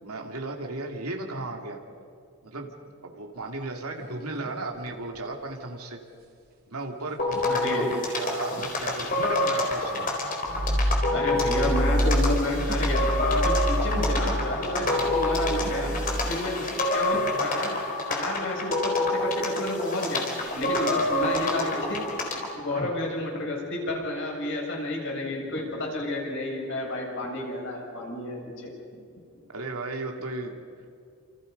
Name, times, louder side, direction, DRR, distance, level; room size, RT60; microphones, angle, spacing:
voice 1, 0.0-1.8 2.4-2.7 3.0-6.0 6.7-10.1 14.8-15.2 16.6-16.7 20.8-21.1 22.7-22.9 29.5-30.5, right 2 dB, 85° right, 2 dB, 2.8 m, -35 dB
sound 1, 3.4-5.8 6.1-14.7 15.0-21.7, right 1 dB, 45° right, 3.4 m, -49 dB
sound 2, 7.2-22.6, left 1 dB, 40° left, 4.2 m, -28 dB
voice 2, 7.5-7.9 11.1-15.9 16.2-17.8 18.1-20.3 20.5-28.7, left 1 dB, 55° left, -1 dB, 7.2 m, -31 dB
sound 3, 10.5-16.3, equal, 60° right, 5.1 m, -27 dB
29.5 x 28.0 x 5.4 m, 2.3 s
head